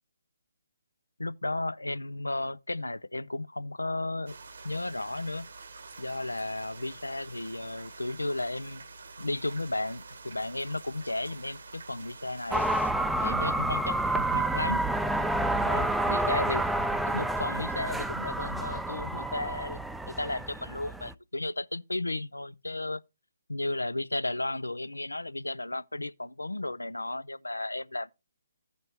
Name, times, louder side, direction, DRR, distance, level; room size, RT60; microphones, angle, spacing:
voice 1, 1.2-4.4 4.6-5.5 6.0-8.8 9.2-12.6 13.2-14.8 15.6-16.6 17.1-19.8 20.1-23.0 23.5-28.1, left 2 dB, 85° left, 0.4 m, -34 dB
sound 1, 4.3-12.9, right 4 dB, 65° right, 1.1 m, -47 dB
sound 2, 12.5-21.1, right 1 dB, ahead, 0.4 m, -29 dB
15.0 x 5.2 x 2.9 m
figure-of-eight pair, 140°, 0 cm